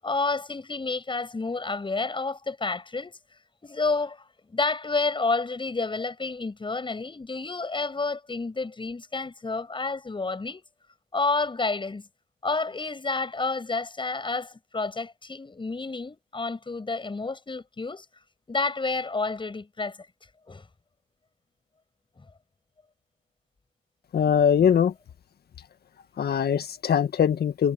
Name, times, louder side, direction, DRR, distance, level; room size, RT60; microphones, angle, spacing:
voice 1, 0.0-3.2 3.6-10.6 11.1-12.1 12.4-18.1 18.5-20.0 20.5-20.7 22.2-22.3, left 3 dB, 25° left, 7.4 m, -30 dB
voice 2, 24.1-24.9 26.2-27.7, left 8 dB, 50° left, 1.7 m, -22 dB
cardioid pair, 90°, 20 cm